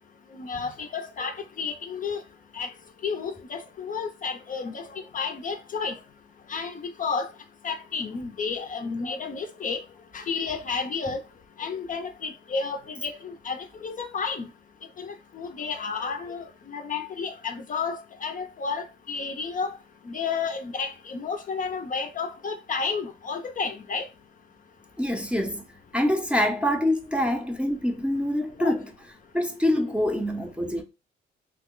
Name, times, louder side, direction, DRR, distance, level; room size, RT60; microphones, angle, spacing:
voice 1, 0.4-2.2 2.5-2.7 3.0-6.0 6.5-7.3 7.6-9.8 10.1-11.2 11.6-14.5 15.0-19.7 20.1-24.1 28.6-28.7, left 5 dB, 40° left, 0.5 m, -31 dB
voice 2, 25.0-25.6 25.9-28.9 29.3-30.8, left 1 dB, 5° right, 0.6 m, -25 dB
2.9 x 2.1 x 3.7 m
cardioid pair, 90°, 20 cm